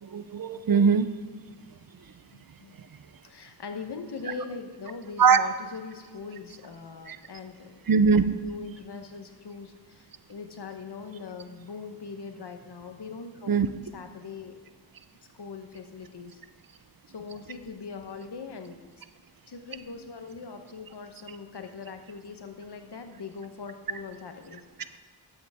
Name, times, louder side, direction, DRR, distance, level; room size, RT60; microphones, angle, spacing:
voice 1, 0.0-1.1 5.2-5.4 7.1-7.2 7.9-8.3 13.5-13.7, right 5 dB, 55° right, 12 dB, 0.6 m, -21 dB
voice 2, 2.3-2.8 3.2-8.0 8.4-13.5 13.9-14.5 15.3-16.4 17.1-18.8 19.5-25.0, left 5 dB, 75° left, 6 dB, 1.1 m, -41 dB
11.5 x 8.1 x 3.5 m, 1.5 s
cardioid pair, 45°, 40 cm